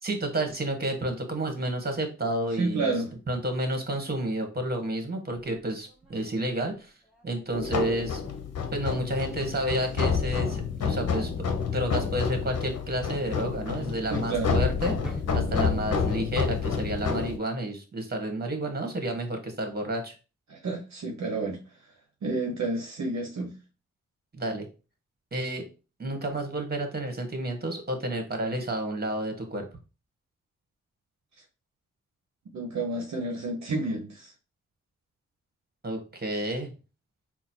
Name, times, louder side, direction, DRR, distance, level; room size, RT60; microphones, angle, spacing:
voice 1, 0.0-3.0 3.3-6.9 7.2-8.2 8.7-20.1 24.3-24.7 25.3-25.6 26.0-29.7 35.8-36.7, right 1 dB, 30° right, 5 dB, 1.5 m, -30 dB
voice 2, 2.6-3.1 14.1-14.6 20.5-21.6 22.2-23.5 32.5-34.3, right 3 dB, 60° right, 2 dB, 0.9 m, -30 dB
sound 1, 5.8-17.5, equal, ahead, 1.4 m, -49 dB
sound 2, 7.5-17.4, left 6 dB, 55° left, 0.9 m, -29 dB
3.9 x 2.1 x 4.4 m, 0.32 s
supercardioid pair, 40°, 31 cm